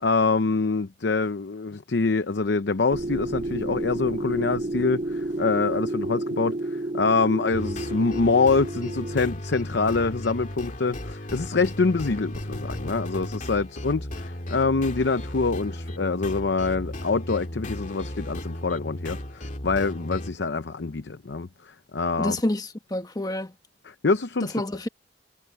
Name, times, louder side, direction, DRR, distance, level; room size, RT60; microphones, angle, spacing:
voice 1, 0.0-22.4 23.9-24.6, left 4 dB, 70° left, 0.7 m, -25 dB
sound 1, 2.9-9.3, right 1 dB, 45° right, 2.0 m, -31 dB
sound 2, 7.5-20.3, left 1 dB, 45° left, 2.5 m, -35 dB
voice 2, 22.2-23.5 24.4-24.9, left 1 dB, 20° left, 1.3 m, -28 dB
head